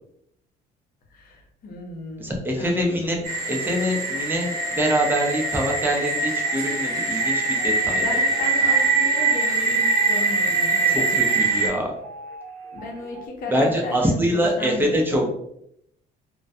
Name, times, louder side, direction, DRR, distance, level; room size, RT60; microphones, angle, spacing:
voice 1, 1.1-3.3 7.8-11.3 12.7-15.3, left 2 dB, 60° left, 0 dB, 0.7 m, -34 dB
voice 2, 2.2-3.2 3.5-8.0 10.9-11.9 13.5-15.3, equal, 10° right, 0 dB, 0.6 m, -24 dB
sound 1, 3.2-11.7, right 3 dB, 65° right, 0.9 m, -23 dB
sound 2, 4.4-13.3, right 2 dB, 80° right, 0.5 m, -40 dB
2.2 x 2.2 x 2.6 m, 0.74 s
cardioid pair, 110°, 17 cm